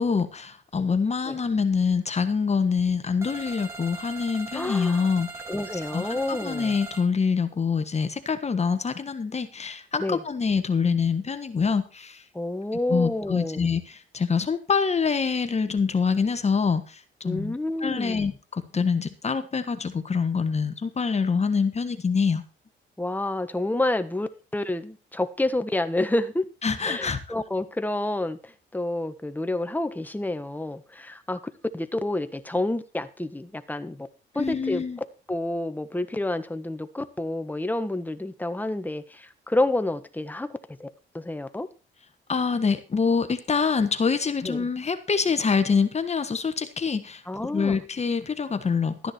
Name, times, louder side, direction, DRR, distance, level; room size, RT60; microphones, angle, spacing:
voice 1, 0.0-5.3 5.9-12.2 12.9-17.5 17.8-22.4 26.6-27.2 34.3-35.0 42.3-49.1, left 5 dB, 35° left, 1.4 m, -25 dB
sound 1, 3.2-7.1, right 3 dB, 15° right, 2.5 m, -39 dB
voice 2, 4.5-5.1 5.5-6.7 10.0-10.2 12.3-13.7 17.2-18.3 23.0-26.4 26.8-31.4 31.7-34.1 34.3-34.8 35.3-40.5 40.8-40.9 41.1-41.7 44.4-44.7 47.3-47.8, left 2 dB, 10° left, 1.4 m, -29 dB
13.5 x 10.0 x 4.4 m
cardioid pair, 90°, 20 cm